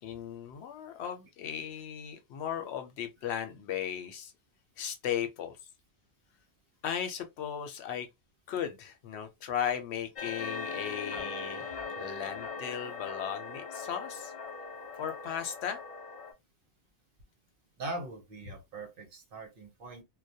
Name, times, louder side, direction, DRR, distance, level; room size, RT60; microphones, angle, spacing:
voice 1, 0.0-4.3 4.8-5.6 6.8-8.1 8.5-14.3 15.0-15.8, left 9 dB, 75° left, 0.8 m, -36 dB
sound 1, 10.2-16.3, left 4 dB, 50° left, 0.4 m, -40 dB
voice 2, 17.8-20.0, right 2 dB, 60° right, 0.8 m, -41 dB
2.2 x 2.1 x 2.6 m
omnidirectional pair, 1.1 m